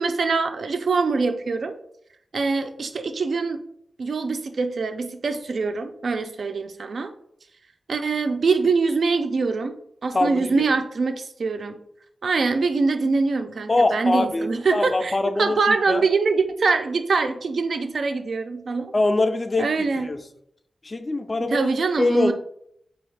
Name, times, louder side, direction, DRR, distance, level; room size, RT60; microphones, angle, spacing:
voice 1, 0.0-1.8 2.3-3.6 4.0-7.1 7.9-11.8 12.2-18.9 19.6-20.1 21.4-22.3, right 4 dB, 65° right, 7 dB, 0.4 m, -24 dB
voice 2, 10.1-10.7 13.7-16.0 18.9-20.2 20.8-21.7 22.0-22.3, left 2 dB, 30° left, 8 dB, 0.3 m, -23 dB
4.2 x 2.4 x 3.2 m, 0.71 s
wide cardioid pair, 135°, 0 cm